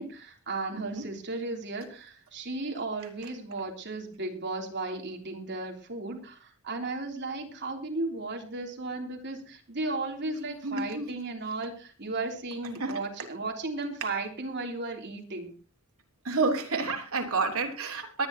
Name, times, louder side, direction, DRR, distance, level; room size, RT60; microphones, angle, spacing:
voice 1, 0.0-15.5, right 3 dB, 50° right, 1 dB, 3.4 m, -35 dB
voice 2, 0.7-1.0 10.6-11.1 12.8-13.0 16.2-18.3, right 3 dB, 70° right, 2 dB, 3.5 m, -29 dB
22.0 x 10.5 x 3.0 m, 0.36 s
head